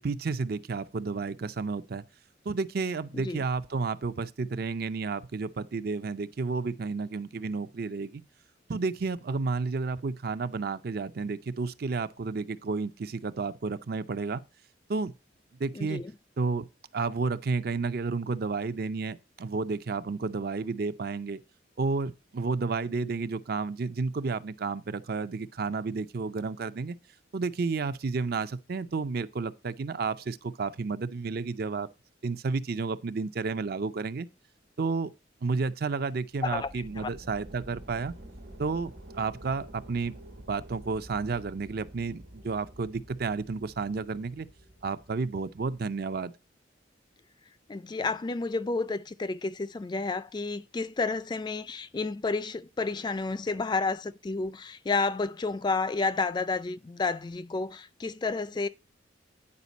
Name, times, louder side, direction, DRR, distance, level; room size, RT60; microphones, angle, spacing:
voice 1, 0.0-2.0 2.5-8.2 8.7-14.4 14.9-15.1 15.6-16.0 16.4-16.7 16.9-21.4 21.8-27.0 27.3-31.9 32.2-34.3 34.8-35.1 35.4-38.1 38.6-40.1 40.5-44.5 44.8-46.3, right 4 dB, 55° right, 0.5 m, -31 dB
voice 2, 15.8-16.1 36.4-37.1 47.7-58.7, left 3 dB, 25° left, 0.3 m, -31 dB
sound 1, 36.3-46.2, right 1 dB, 75° right, 1.3 m, -49 dB
9.7 x 5.0 x 4.1 m
head